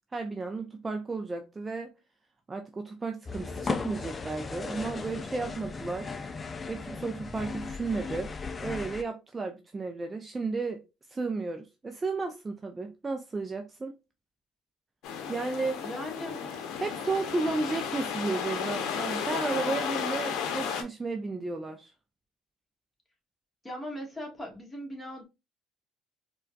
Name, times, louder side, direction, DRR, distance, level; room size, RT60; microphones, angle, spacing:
voice 1, 0.1-1.9 2.5-6.1 6.7-8.3 8.6-10.8 11.1-13.9 15.3-15.8 16.8-21.9, right 3 dB, 25° right, 0.5 m, -33 dB
sound 1, 3.3-9.0, left 4 dB, 30° left, 0.4 m, -37 dB
sound 2, 15.0-20.8, left 7 dB, 70° left, 0.7 m, -33 dB
voice 2, 15.8-16.4 23.6-25.2, equal, 15° left, 1.5 m, -39 dB
4.4 x 2.3 x 2.2 m
supercardioid pair, 75°, 0 cm